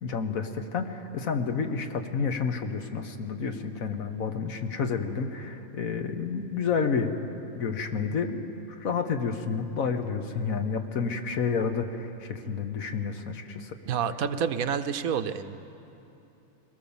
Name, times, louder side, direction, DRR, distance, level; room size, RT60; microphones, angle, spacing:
voice 1, 0.0-7.2 7.5-13.7, left 5 dB, 70° left, 6 dB, 1.5 m, -30 dB
voice 2, 13.9-15.6, right 7 dB, 75° right, 11 dB, 1.2 m, -28 dB
22.5 x 18.0 x 7.1 m, 2.8 s
omnidirectional pair, 1.5 m